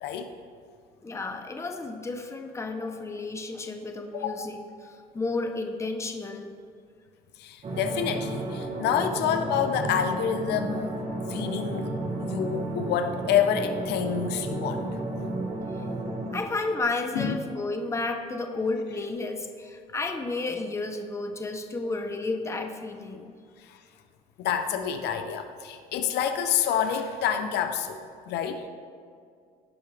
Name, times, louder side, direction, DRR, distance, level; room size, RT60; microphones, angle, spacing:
voice 1, 1.0-6.5 15.8-15.9 16.3-23.4, left 3 dB, 15° left, 5 dB, 0.8 m, -32 dB
voice 2, 4.1-4.5 7.4-11.0 11.3-14.8 17.1-17.5 23.6-23.8 24.4-28.7, left 8 dB, 80° left, 7 dB, 0.7 m, -28 dB
sound 1, 7.6-16.4, right 2 dB, 40° right, 1.5 m, -32 dB
17.0 x 5.7 x 3.4 m, 2.2 s
cardioid pair, 110°, 17 cm